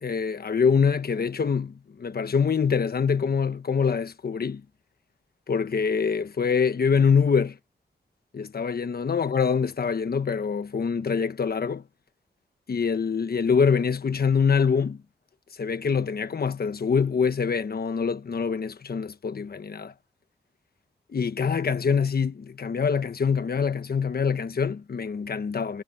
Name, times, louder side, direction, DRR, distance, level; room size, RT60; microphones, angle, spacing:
voice 1, 0.0-4.6 5.5-7.6 8.3-11.8 12.7-15.0 15.5-19.9 21.1-25.8, left 6 dB, 60° left, 1.3 m, -25 dB
cardioid pair, 70°, 18 cm